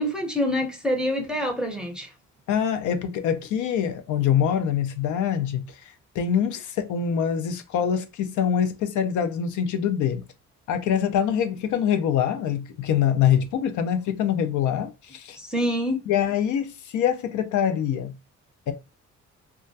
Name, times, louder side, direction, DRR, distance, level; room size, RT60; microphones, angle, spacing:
voice 1, 0.0-2.1 15.4-16.0, equal, 5° right, 0.7 m, -26 dB
voice 2, 2.5-5.6 6.2-10.2 10.7-15.4 16.1-18.1 18.7-18.8, left 8 dB, 75° left, 0.5 m, -24 dB
2.2 x 2.2 x 2.5 m
cardioid pair, 90°, 30 cm